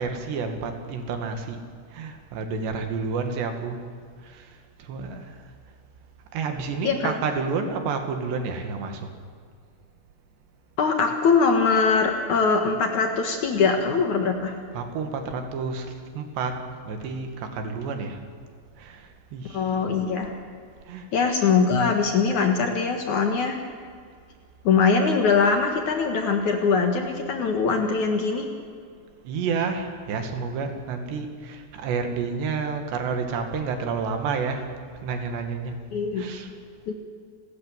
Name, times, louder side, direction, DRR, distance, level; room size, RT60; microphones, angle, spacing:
voice 1, 0.0-1.6 1.9-3.8 4.2-5.4 6.3-9.0 14.7-16.6 16.9-18.2 18.8-19.7 20.9-21.1 29.2-34.7 35.0-35.7 36.2-36.5, right 5 dB, 75° right, 5 dB, 4.2 m, -30 dB
voice 2, 10.8-14.6 19.5-20.3 21.1-23.6 24.6-28.5 35.9-36.2 36.9-37.0, left 5 dB, 55° left, 4 dB, 2.5 m, -22 dB
29.5 x 14.0 x 9.3 m, 2.1 s
omnidirectional pair, 5.0 m